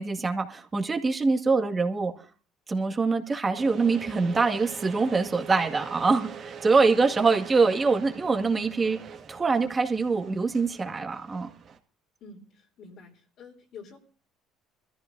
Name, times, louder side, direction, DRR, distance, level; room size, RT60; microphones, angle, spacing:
voice 1, 0.0-2.1 2.7-9.0 9.3-11.5, right 4 dB, 25° right, 2.0 m, -24 dB
sound 1, 3.5-11.8, right 6 dB, 50° right, 1.8 m, -44 dB
voice 2, 12.2-14.0, left 4 dB, 60° left, 3.4 m, -48 dB
23.0 x 14.0 x 2.7 m
supercardioid pair, 95°, 0 cm